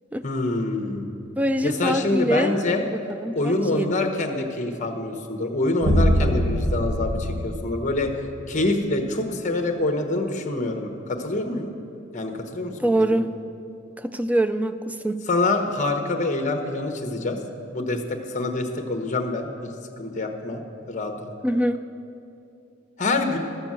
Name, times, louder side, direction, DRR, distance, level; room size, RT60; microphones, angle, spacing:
voice 1, 0.2-1.1 1.6-2.8 3.3-8.2 8.5-11.7 12.1-13.2 15.3-17.4 17.7-19.5 20.0-20.6 20.9-21.3 23.0-23.4, left 2 dB, 40° left, 5 dB, 1.0 m, -26 dB
voice 2, 1.4-2.5 3.2-3.9 12.8-13.3 14.0-15.2 21.4-21.8, right 1 dB, 5° right, 11 dB, 0.3 m, -24 dB
sound 1, 5.8-8.4, equal, 65° right, 1.3 m, -23 dB
12.5 x 6.9 x 7.4 m, 2.6 s
head